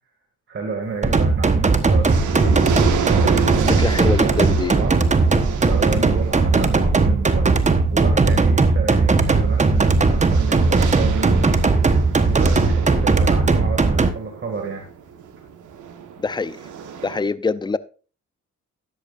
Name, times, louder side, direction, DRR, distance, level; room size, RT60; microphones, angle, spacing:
voice 1, 0.5-5.4 5.7-7.5 7.9-11.7 12.3-14.9, right 4 dB, 40° right, 2.3 m, -31 dB
sound 1, 0.8-1.4 1.8-17.2, right 8 dB, 80° right, 1.8 m, -31 dB
sound 2, 1.0-14.1, right 3 dB, 25° right, 1.2 m, -18 dB
voice 2, 3.7-4.7 16.2-16.6 17.0-17.8, left 4 dB, 15° left, 0.6 m, -24 dB
13.5 x 10.5 x 2.6 m
cardioid pair, 90°, 30 cm